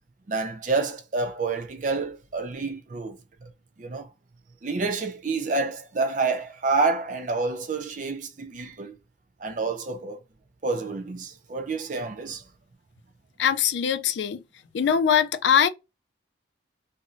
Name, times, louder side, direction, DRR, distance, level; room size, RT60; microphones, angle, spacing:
voice 1, 0.3-3.5 3.8-4.1 4.6-9.0 9.4-10.2 10.6-12.4, right 3 dB, 45° right, 0.5 m, -28 dB
voice 2, 13.4-14.4 14.7-15.7, left 8 dB, 75° left, 0.4 m, -22 dB
3.0 x 2.5 x 2.5 m
head